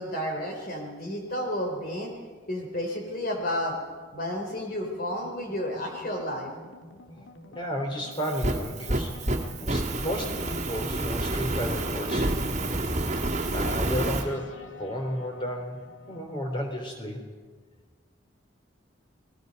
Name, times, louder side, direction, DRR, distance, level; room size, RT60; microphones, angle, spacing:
voice 1, 0.0-2.1 2.5-3.8 4.1-6.5, left 1 dB, 50° left, 2 dB, 3.7 m, -31 dB
sound 1, 3.3-17.0, left 2 dB, 75° left, 2.0 m, -49 dB
voice 2, 7.1-9.3 9.6-12.8 13.5-17.2, equal, 25° left, 3 dB, 3.6 m, -33 dB
Fire, 8.1-14.2, right 1 dB, 35° right, 2.1 m, -29 dB
29.5 x 20.5 x 5.4 m, 1.5 s
head